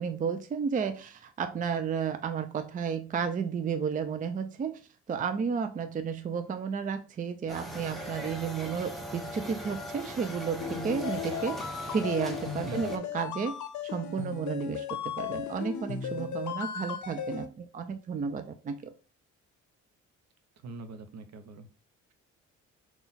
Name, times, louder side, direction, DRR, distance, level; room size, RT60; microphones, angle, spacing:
voice 1, 0.0-4.8 5.1-18.9, right 6 dB, 25° right, 8 dB, 0.4 m, -32 dB
sound 1, 7.5-13.0, equal, ahead, 0.8 m, -40 dB
sound 2, 10.6-17.4, left 8 dB, 70° left, 0.7 m, -36 dB
voice 2, 12.7-13.0 20.6-21.7, right 2 dB, 60° right, 9 dB, 0.7 m, -43 dB
4.0 x 2.4 x 3.9 m, 0.32 s
cardioid pair, 90°, 30 cm